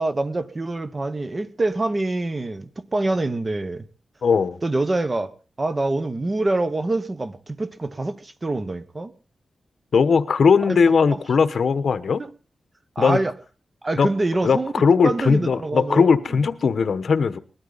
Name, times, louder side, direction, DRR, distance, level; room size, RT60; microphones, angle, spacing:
voice 1, 0.0-3.8 4.6-5.3 5.6-9.1 10.7-10.8 11.1-11.2 12.2-12.3 12.9-13.3 13.8-14.7 15.0-16.1, right 2 dB, 30° right, 1.1 m, -25 dB
voice 2, 4.2-4.6 9.9-12.2 13.0-13.2 14.0-14.1 14.4-17.4, left 5 dB, 65° left, 1.0 m, -19 dB
20.5 x 13.0 x 4.0 m
wide cardioid pair, 120°, 0 cm